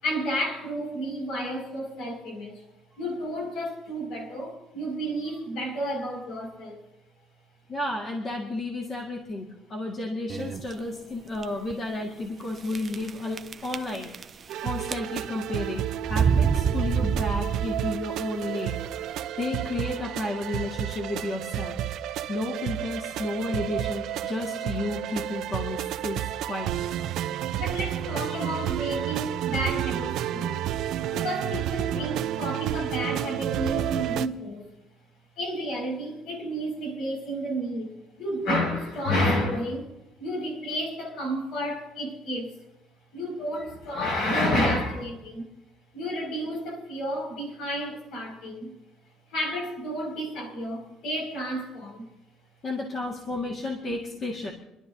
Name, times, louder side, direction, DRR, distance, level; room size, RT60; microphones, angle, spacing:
voice 1, 0.0-2.6 3.0-6.8 12.4-12.6 27.6-30.6 31.1-34.6 35.4-39.9 40.2-42.5 43.1-45.5 45.9-48.7 49.3-52.1, equal, 65° left, 5.9 m, -31 dB
voice 2, 7.7-14.1 14.6-18.8 19.4-21.8 22.3-26.9 52.6-54.5, left 2 dB, 30° left, 1.9 m, -32 dB
sound 1, 10.3-10.7 11.4-11.5 11.7-11.8 12.7-13.1 13.4-14.5 14.8-15.4 16.0-18.0, right 7 dB, 25° right, 0.4 m, -26 dB
sound 2, 14.5-34.3, right 11 dB, 65° right, 0.7 m, -31 dB
27.0 x 12.0 x 2.8 m
cardioid pair, 175°, 0 cm